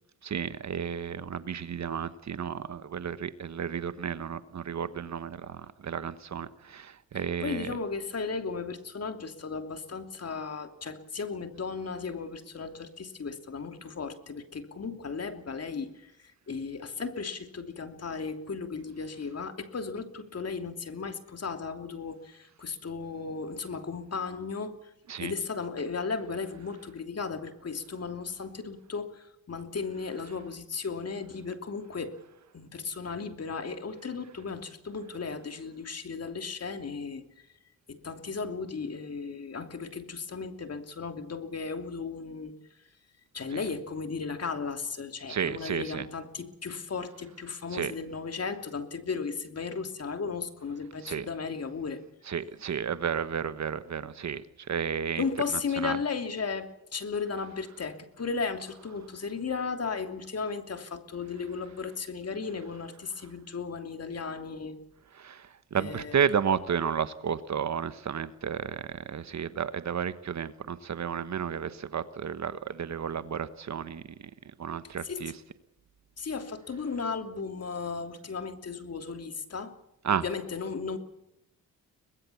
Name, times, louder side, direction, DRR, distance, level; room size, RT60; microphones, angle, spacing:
voice 1, 0.2-7.7 25.1-25.3 43.5-43.6 45.3-46.1 47.7-47.9 51.0-51.3 52.3-54.4 54.7-55.2 55.8-56.0 65.2-65.4 65.7-74.0 74.6-75.3 80.0-80.2, right 7 dB, 50° right, 13 dB, 1.3 m, -32 dB
voice 2, 7.1-16.1 16.5-24.8 25.2-32.1 32.5-37.2 37.9-42.5 43.3-52.0 55.1-64.8 65.7-66.2 75.0-75.2 76.2-79.7 80.1-81.0, left 5 dB, 45° left, 7 dB, 3.0 m, -35 dB
23.0 x 20.5 x 7.2 m, 0.83 s
supercardioid pair, 70°, 36 cm